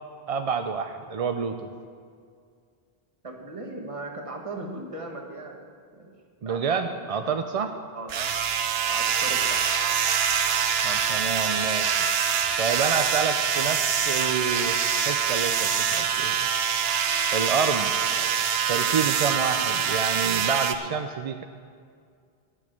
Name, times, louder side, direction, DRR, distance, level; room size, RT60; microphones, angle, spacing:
voice 1, 0.3-1.7 6.4-7.8 10.8-12.0 12.6-16.4 17.3-17.9 18.7-21.4, right 6 dB, 50° right, 6 dB, 0.4 m, -28 dB
voice 2, 3.2-5.6 5.9-6.1 6.4-7.3 7.9-8.5 8.9-9.9 18.1-18.7, right 2 dB, 30° right, 1 dB, 1.4 m, -39 dB
sound 1, 8.1-20.7, right 7 dB, 70° right, 0.9 m, -25 dB
11.5 x 6.3 x 8.8 m, 2.2 s
omnidirectional pair, 1.1 m